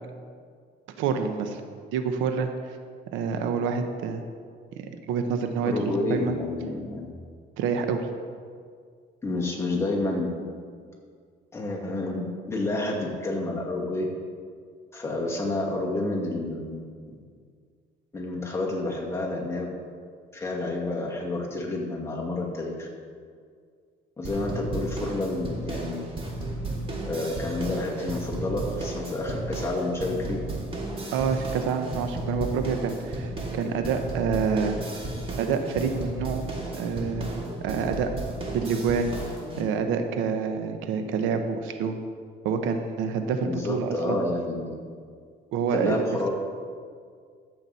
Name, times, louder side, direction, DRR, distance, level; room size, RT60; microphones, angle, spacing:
voice 1, 1.0-1.6 1.9-2.5 3.1-4.2 4.8-6.3 7.6-8.1 31.1-34.8 35.4-36.4 36.7-38.1 38.5-39.1 39.6-42.0 42.4-44.2 45.5-46.0, right 6 dB, 90° right, 7 dB, 0.9 m, -27 dB
voice 2, 5.6-7.1 9.2-10.3 11.5-14.1 14.9-16.8 18.1-19.7 20.3-22.9 24.2-26.0 27.0-30.4 43.4-44.8 45.7-46.3, left 2 dB, 15° left, -2 dB, 2.2 m, -29 dB
sound 1, 24.2-39.6, right 1 dB, 30° right, 2.0 m, -34 dB
13.5 x 7.9 x 4.2 m, 2.1 s
cardioid pair, 115°, 20 cm